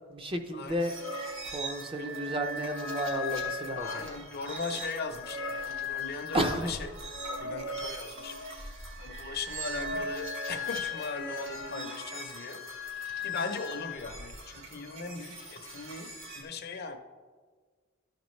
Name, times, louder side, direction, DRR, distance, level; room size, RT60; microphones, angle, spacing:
voice 1, 0.1-0.9 1.5-4.1 6.3-6.8, right 1 dB, 25° right, 5 dB, 0.5 m, -32 dB
sound 1, 0.8-16.4, left 2 dB, 70° right, 1.6 m, -38 dB
voice 2, 3.8-6.8 7.2-8.6 9.0-12.8 13.2-16.1 16.4-17.0, left 4 dB, 50° left, 6 dB, 0.6 m, -39 dB
sound 2, 5.1-10.2, equal, 85° right, 2.3 m, -51 dB
12.5 x 5.2 x 3.1 m, 1.5 s
head